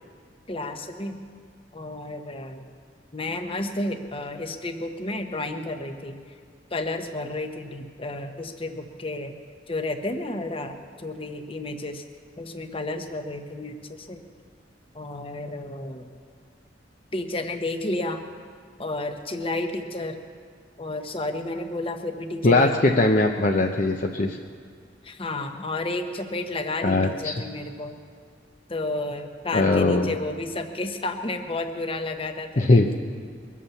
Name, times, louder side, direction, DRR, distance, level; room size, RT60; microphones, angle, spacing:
voice 1, 0.5-1.2 1.7-2.6 3.1-6.2 6.7-9.3 9.7-12.0 12.4-14.2 14.9-16.1 17.1-18.2 18.8-20.1 20.8-22.7 25.0-27.9 28.7-32.8, left 2 dB, 30° left, 6 dB, 1.1 m, -31 dB
voice 2, 22.4-24.4 26.8-27.4 29.5-30.2 32.6-32.9, left 2 dB, 45° left, 2 dB, 0.7 m, -20 dB
22.0 x 8.5 x 7.2 m, 2.2 s
head